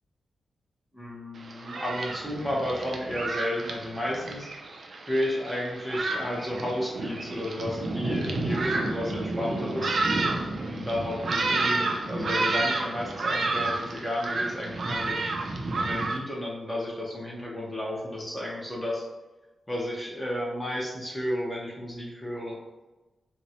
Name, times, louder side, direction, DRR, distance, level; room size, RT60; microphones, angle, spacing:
voice 1, 0.9-4.5 5.1-10.0 10.6-15.3 15.8-19.0 19.7-22.6, left 1 dB, 10° left, -4 dB, 0.7 m, -32 dB
Thunderstorm, 1.4-16.2, right 2 dB, 50° right, 0.4 m, -30 dB
3.9 x 2.0 x 2.8 m, 1.1 s
wide cardioid pair, 165°, 0 cm